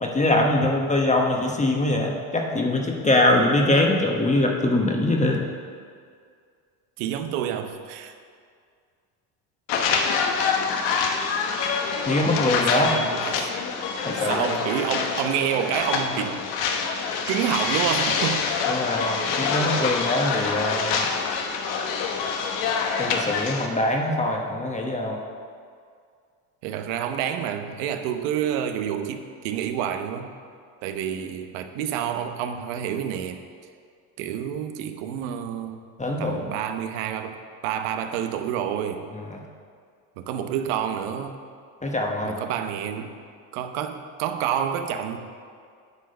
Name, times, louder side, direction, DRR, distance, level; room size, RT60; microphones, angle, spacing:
voice 1, 0.0-5.4 12.1-12.9 14.0-14.5 18.7-21.1 23.0-25.2 36.0-36.4 39.3-39.4 41.8-42.4, left 1 dB, 15° left, 1 dB, 1.0 m, -23 dB
voice 2, 7.0-8.1 12.7-13.4 14.2-16.5 17.3-18.5 26.6-30.3 30.8-33.4 34.2-35.8 36.2-37.4 37.6-39.1 40.2-41.4 42.2-43.1 43.5-45.2, right 9 dB, 75° right, 7 dB, 1.0 m, -28 dB
sound 1, 9.7-23.7, left 5 dB, 60° left, 1.2 m, -26 dB
9.8 x 4.8 x 6.5 m, 2.2 s
supercardioid pair, 95°, 48 cm